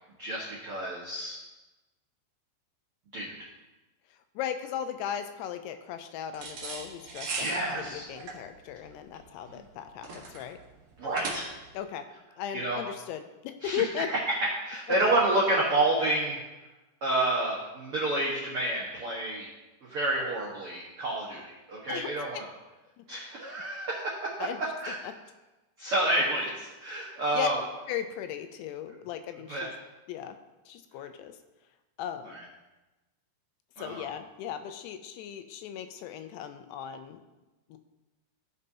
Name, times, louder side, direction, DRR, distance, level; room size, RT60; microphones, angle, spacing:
voice 1, 0.2-1.4 3.1-3.3 7.3-8.0 11.0-11.5 12.5-12.8 13.6-13.8 14.1-16.4 17.0-19.5 19.8-22.5 23.1-24.3 24.8-25.0 25.8-27.6 29.5-29.7 32.3-32.4 33.8-34.1, right 1 dB, 80° right, -6 dB, 1.2 m, -29 dB
voice 2, 4.4-7.5 7.8-10.6 11.7-12.1 12.4-14.1 21.9-22.5 23.0-23.1 24.4-24.6 25.0-25.1 27.3-27.5 27.9-29.7 30.1-30.4 30.7-31.3 32.0-32.4 33.8-37.2 37.7-37.8, left 9 dB, 85° left, 9 dB, 2.6 m, -37 dB
sound 1, 6.3-11.8, right 3 dB, 65° right, 1.5 m, -38 dB
15.5 x 5.4 x 2.8 m, 1.1 s
omnidirectional pair, 4.8 m